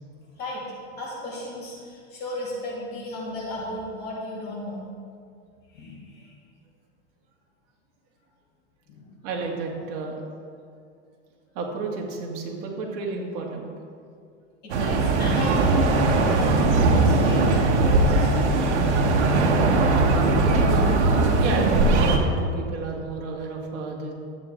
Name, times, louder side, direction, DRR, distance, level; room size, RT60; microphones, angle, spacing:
voice 1, 0.4-0.7 1.0-4.8 5.7-6.3 8.9-9.1 14.6-18.8, left 1 dB, 30° left, -7 dB, 2.9 m, -35 dB
voice 2, 9.2-10.2 11.5-13.7 21.4-24.1, right 4 dB, 45° right, -1 dB, 2.2 m, -31 dB
sound 1, 14.7-22.2, right 2 dB, 75° right, 1.5 m, -20 dB
13.0 x 8.7 x 3.7 m, 2.3 s
supercardioid pair, 140°, 34 cm